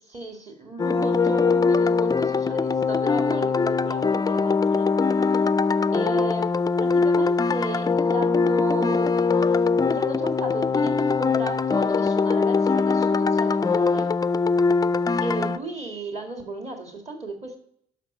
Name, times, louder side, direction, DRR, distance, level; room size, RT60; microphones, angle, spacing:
voice 1, 0.1-4.9 5.9-9.1 9.9-14.1 15.2-17.6, right 2 dB, 35° right, 3 dB, 2.2 m, -35 dB
sound 1, 0.8-15.6, left 4 dB, 20° left, 0.4 m, -22 dB
11.5 x 5.8 x 5.5 m, 0.70 s
cardioid pair, 90°, 20 cm